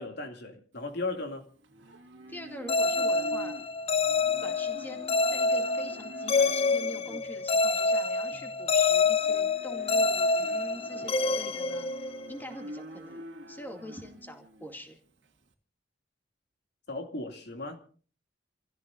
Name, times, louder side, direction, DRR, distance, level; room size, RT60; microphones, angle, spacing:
voice 1, 0.0-1.5 16.9-17.8, left 2 dB, 65° left, 2.6 m, -36 dB
Livestock farm animals working animals, 0.7-15.5, right 1 dB, 75° right, 2.1 m, -47 dB
voice 2, 2.3-3.6 4.4-13.2 13.5-15.0, equal, 10° left, 2.4 m, -44 dB
sound 1, 2.7-12.5, left 3 dB, 30° left, 0.6 m, -27 dB
28.5 x 15.5 x 2.6 m
head